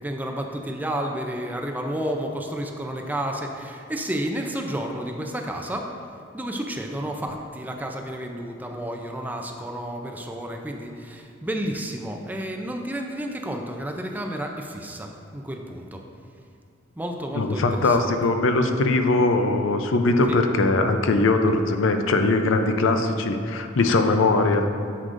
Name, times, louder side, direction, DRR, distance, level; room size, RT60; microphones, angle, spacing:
voice 1, 0.0-5.9 6.3-16.0 17.0-18.1 20.3-20.4, right 1 dB, 10° right, 2 dB, 0.4 m, -31 dB
voice 2, 17.3-24.7, left 2 dB, 75° left, 6 dB, 0.5 m, -21 dB
9.7 x 6.5 x 2.5 m, 2.4 s
head